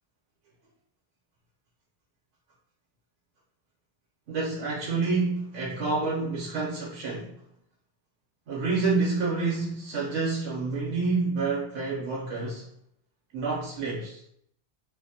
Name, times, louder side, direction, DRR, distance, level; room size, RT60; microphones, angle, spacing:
voice 1, 4.3-7.3 8.5-12.7 13.3-14.2, right 3 dB, 75° right, 0.9 m, -28 dB
2.4 x 2.0 x 2.6 m
omnidirectional pair, 1.2 m